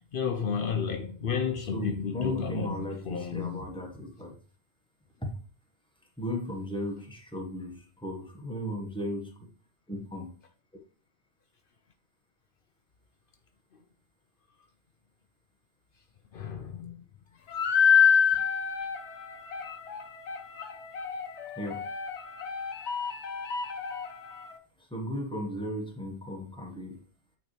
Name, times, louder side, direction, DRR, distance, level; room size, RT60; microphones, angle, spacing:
voice 1, 0.1-3.6 16.3-16.9, left 6 dB, 55° left, 0.7 m, -32 dB
voice 2, 1.6-4.3 5.2-5.3 6.2-9.5 9.9-10.3 21.6-21.9 24.8-27.0, left 1 dB, 5° left, 1.2 m, -36 dB
sound 1, 17.5-24.5, left 7 dB, 75° left, 1.1 m, -27 dB
9.0 x 4.2 x 3.2 m
omnidirectional pair, 1.2 m